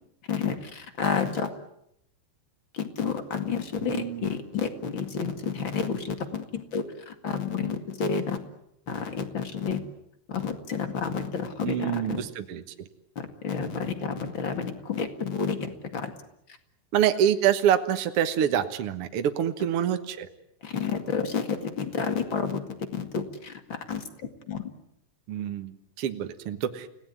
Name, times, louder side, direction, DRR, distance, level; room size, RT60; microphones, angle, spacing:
voice 1, 0.3-1.5 2.7-8.4 8.9-9.8 10.3-12.2 13.2-16.1 20.6-22.6 22.9-24.0 24.5-24.6, left 6 dB, 40° left, 8 dB, 2.1 m, -30 dB
voice 2, 3.8-4.3 11.6-12.6 16.9-20.3 25.3-26.9, right 10 dB, 70° right, 8 dB, 1.3 m, -26 dB
30.0 x 18.0 x 9.5 m, 0.78 s
omnidirectional pair, 4.7 m